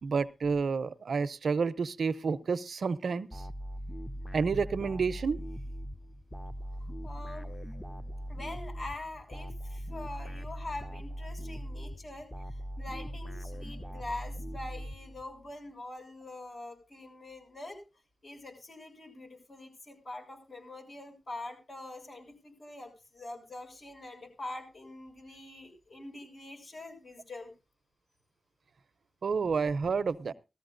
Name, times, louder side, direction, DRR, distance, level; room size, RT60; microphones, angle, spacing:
voice 1, 0.0-3.4 4.3-5.4 29.2-30.3, right 5 dB, 80° right, 16 dB, 0.6 m, -30 dB
sound 1, 3.3-15.5, equal, 10° left, 0.8 m, -40 dB
voice 2, 6.8-7.5 8.3-17.8 18.2-27.5, left 2 dB, 60° left, 3 dB, 6.7 m, -44 dB
19.5 x 14.0 x 2.6 m, 0.29 s
cardioid pair, 55°, 0 cm